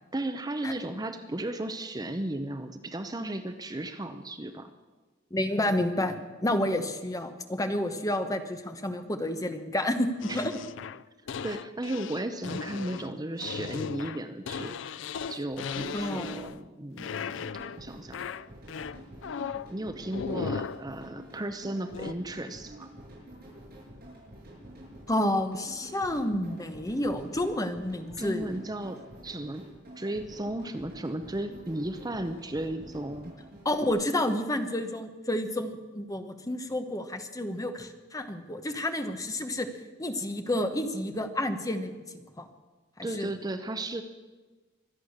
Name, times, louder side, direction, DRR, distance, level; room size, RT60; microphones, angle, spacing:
voice 1, 0.1-4.7 10.3-10.4 11.4-15.0 15.3-17.4 17.8-18.2 19.7-22.9 28.2-29.7 30.0-33.3 43.0-44.0, right 1 dB, 20° right, 8 dB, 0.7 m, -35 dB
voice 2, 5.3-10.6 15.9-16.3 25.1-28.6 33.6-39.7 40.0-42.5 43.2-43.3, left 1 dB, 20° left, 7 dB, 1.1 m, -30 dB
sound 1, 10.2-16.7 17.0-17.8 18.1-19.7 20.1-20.8 21.9-22.1, left 6 dB, 75° left, 0.4 m, -37 dB
sound 2, 17.3-33.9, right 1 dB, 50° right, 7.1 m, -48 dB
24.0 x 9.1 x 6.5 m, 1.3 s
head